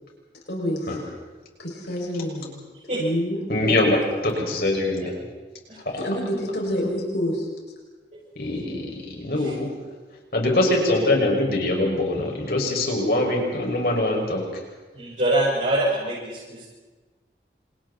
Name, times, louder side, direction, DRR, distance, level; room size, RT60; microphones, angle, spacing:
voice 1, 0.5-1.0 1.6-2.5 3.0-3.4 6.0-7.5, equal, 80° left, -2 dB, 6.6 m, -27 dB
voice 2, 3.5-5.1 8.3-9.7 10.3-14.4, left 1 dB, 60° left, 0 dB, 6.3 m, -23 dB
voice 3, 14.9-16.7, right 1 dB, 45° right, -8 dB, 6.6 m, -24 dB
29.0 x 27.5 x 4.4 m, 1.3 s
head